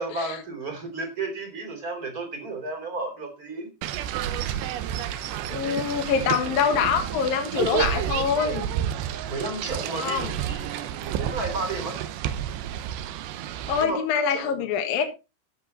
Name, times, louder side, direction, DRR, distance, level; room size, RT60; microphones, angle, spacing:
voice 1, 0.0-3.7 9.3-12.0 13.8-14.0 14.3-14.6, right 3 dB, 25° right, 5 dB, 2.7 m, -33 dB
sound 1, 3.8-13.9, right 10 dB, 75° right, 2.9 m, -30 dB
voice 2, 5.5-8.7 9.9-10.3 13.7-15.0, left 7 dB, 60° left, 5 dB, 2.9 m, -25 dB
14.5 x 7.5 x 4.1 m, 0.28 s
omnidirectional pair, 5.3 m